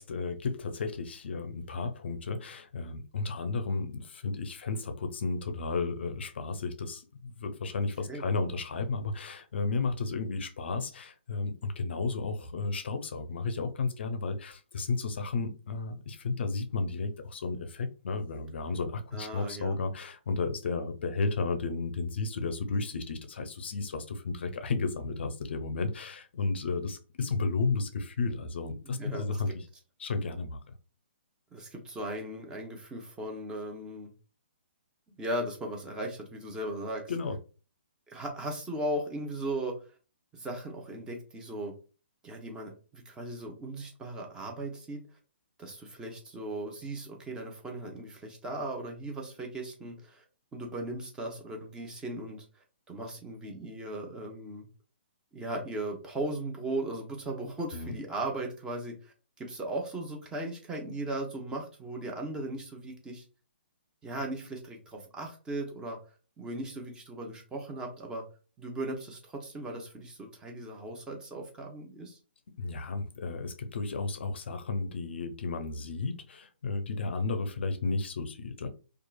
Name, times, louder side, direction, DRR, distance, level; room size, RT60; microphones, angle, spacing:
voice 1, 0.0-29.6 30.0-30.7 37.1-37.4 57.7-58.0 72.6-78.7, left 4 dB, 65° left, 0.5 m, -33 dB
voice 2, 8.1-8.4 19.1-19.7 28.9-29.4 31.5-34.1 35.2-37.0 38.1-39.8 40.3-41.7 42.2-45.0 45.6-50.2 50.5-52.4 52.9-54.7 55.3-63.2 64.0-66.0 66.4-68.2 68.6-72.2, right 1 dB, 10° right, 0.7 m, -37 dB
2.9 x 2.4 x 2.2 m
figure-of-eight pair, 135°, 6 cm